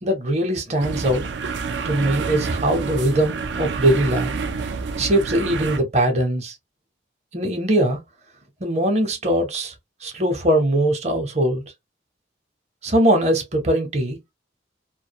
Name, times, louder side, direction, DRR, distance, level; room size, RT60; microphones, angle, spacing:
voice 1, 0.0-1.2 1.8-4.3 5.0-6.5 7.3-8.0 8.6-9.7 10.0-11.6 12.8-14.2, right 1 dB, 35° right, 0.7 m, -21 dB
sound 1, 0.8-5.8, right 4 dB, 75° right, 0.4 m, -28 dB
2.3 x 2.1 x 2.7 m
head